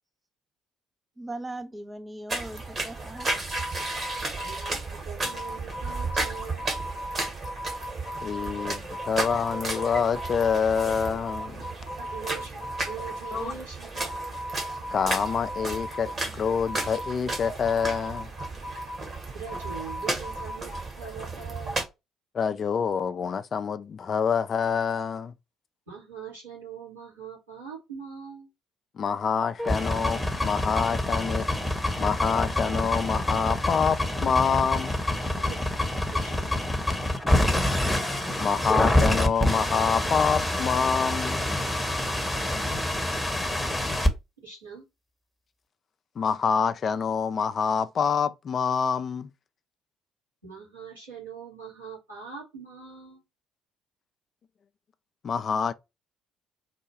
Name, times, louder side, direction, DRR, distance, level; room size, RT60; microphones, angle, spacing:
voice 1, 1.2-3.3, right 2 dB, 20° right, 0.6 m, -39 dB
sound 1, 2.3-21.8, right 2 dB, 40° right, 1.4 m, -34 dB
sound 2, 3.2-20.9, equal, 60° right, 2.0 m, -39 dB
voice 2, 4.4-6.7 12.0-12.6 12.8-14.2 19.3-21.8 25.9-28.5 35.4-35.6 36.1-36.5 44.4-44.8 50.4-53.2, right 7 dB, 85° right, 2.2 m, -42 dB
voice 3, 8.2-11.6 13.3-13.5 14.9-18.3 22.3-25.3 29.0-31.5 32.0-35.0 38.4-41.5 46.2-49.3 55.2-55.7, left 6 dB, 40° left, 0.4 m, -26 dB
sound 3, 29.6-44.1, left 1 dB, 5° left, 0.9 m, -26 dB
4.2 x 2.2 x 3.0 m
figure-of-eight pair, 50°, 0 cm